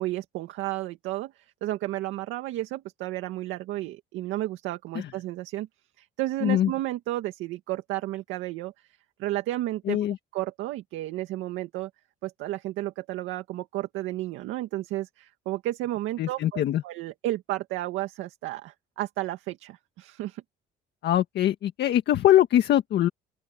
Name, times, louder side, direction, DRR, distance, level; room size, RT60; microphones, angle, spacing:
voice 1, 0.0-5.7 6.0-8.7 9.2-10.0 10.3-11.9 12.2-20.4, right 16 dB, 85° right, 2.0 m, -32 dB
voice 2, 16.2-16.8 21.0-23.1, left 12 dB, 60° left, 1.7 m, -22 dB
open air
cardioid pair, 140°, 20 cm